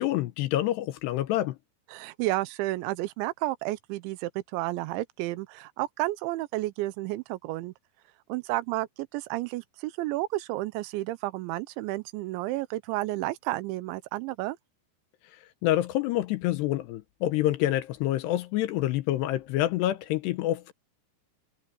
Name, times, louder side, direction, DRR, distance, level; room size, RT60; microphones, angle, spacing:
voice 1, 0.0-1.6 15.6-20.7, left 14 dB, 80° left, 2.7 m, -27 dB
voice 2, 1.9-7.7 8.3-14.6, right 18 dB, 85° right, 3.1 m, -31 dB
omnidirectional pair, 5.3 m